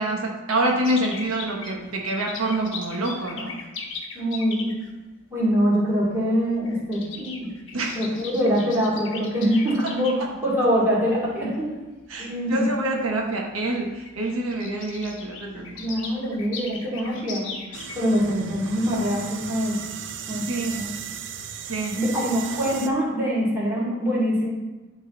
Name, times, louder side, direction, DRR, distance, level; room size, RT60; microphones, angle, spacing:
voice 1, 0.0-3.6 7.7-8.0 12.1-15.8 17.0-17.2 20.5-20.8 21.6-22.0, right 1 dB, 85° right, 0 dB, 1.1 m, -26 dB
sound 1, 0.7-4.9 5.9-6.2 6.5-10.1 10.8-11.1 11.8-11.9 12.2-12.3 13.3-13.4 13.6-13.7 13.9-18.3 18.6-18.7, left 4 dB, 65° left, 1.2 m, -38 dB
voice 2, 4.1-4.8 5.3-11.7 12.2-12.8 15.8-17.5 17.9-19.8 20.3-20.5 20.8-20.9 21.9-24.5, equal, 10° right, -9 dB, 2.7 m, -24 dB
sound 2, 17.7-22.9, right 7 dB, 55° right, 0.6 m, -36 dB
11.5 x 3.9 x 3.8 m, 1.2 s
head